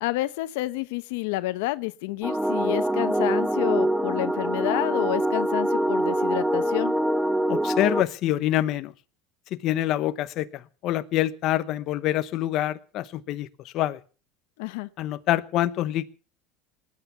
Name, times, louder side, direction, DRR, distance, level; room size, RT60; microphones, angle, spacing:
voice 1, 0.0-6.9 14.6-14.9, left 18 dB, 80° left, 1.0 m, -29 dB
sound 1, 2.2-8.0, right 1 dB, 5° right, 1.2 m, -24 dB
voice 2, 7.5-8.9 9.5-14.0 15.0-16.1, left 14 dB, 50° left, 0.9 m, -26 dB
20.5 x 9.5 x 7.0 m
supercardioid pair, 130°, 0 cm